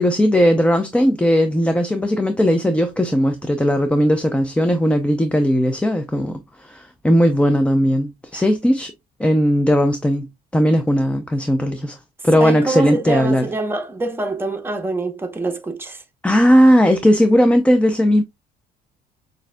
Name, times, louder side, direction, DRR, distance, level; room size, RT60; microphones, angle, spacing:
voice 1, 0.0-8.9 9.2-10.3 10.5-12.0 12.2-13.5 16.2-18.2, equal, 5° left, 0.5 m, -17 dB
voice 2, 12.3-16.0, right 3 dB, 15° right, 0.8 m, -25 dB
6.3 x 2.6 x 2.2 m
cardioid pair, 110°, 17 cm